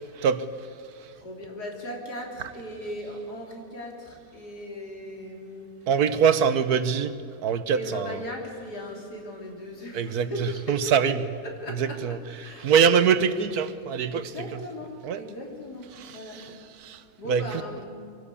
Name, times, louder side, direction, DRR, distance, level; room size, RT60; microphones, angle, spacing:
voice 1, 1.1-5.8 7.7-11.0 11.4-12.0 12.4-13.0 13.2-13.3 14.1-16.5 17.2-17.9, left 1 dB, 90° left, 0 dB, 4.0 m, -38 dB
voice 2, 5.9-7.1 7.4-8.2 9.9-11.2 11.7-12.2 12.4-14.3 15.0-15.2 16.0-16.5 16.8-17.0 17.3-17.6, right 7 dB, 75° right, 12 dB, 1.4 m, -24 dB
24.0 x 18.0 x 8.4 m, 2.4 s
omnidirectional pair, 1.7 m